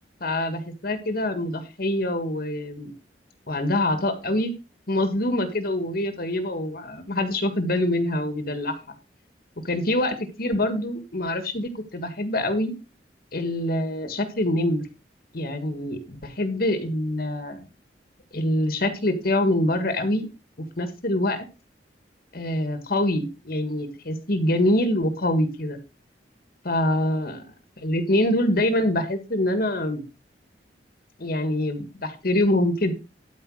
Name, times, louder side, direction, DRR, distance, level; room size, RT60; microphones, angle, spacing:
voice 1, 0.2-2.9 3.5-4.5 4.9-8.7 9.6-12.7 13.3-14.8 15.3-17.6 18.3-20.2 20.8-21.4 22.3-25.8 26.6-27.4 27.8-30.0 31.2-32.9, left 1 dB, 60° left, 8 dB, 1.7 m, -25 dB
12.5 x 5.2 x 4.8 m, 0.28 s
head